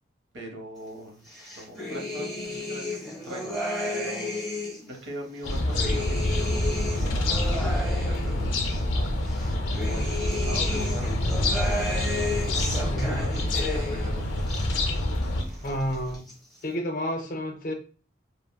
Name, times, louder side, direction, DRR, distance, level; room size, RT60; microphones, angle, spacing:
voice 1, 0.3-1.2 1.6-14.6, equal, 75° right, 2 dB, 0.8 m, -42 dB
sound 1, 1.3-4.9 5.4-8.8 9.3-14.1 14.4-15.3 15.5-16.3, left 2 dB, ahead, 0.8 m, -33 dB
sound 2, 5.4-15.4, left 1 dB, 90° left, 0.5 m, -27 dB
sound 3, 5.5-16.2, equal, 35° right, 0.7 m, -41 dB
voice 2, 12.8-13.2 15.6-16.2 16.6-17.7, equal, 45° left, 4 dB, 0.5 m, -30 dB
3.5 x 2.0 x 2.2 m, 0.37 s
head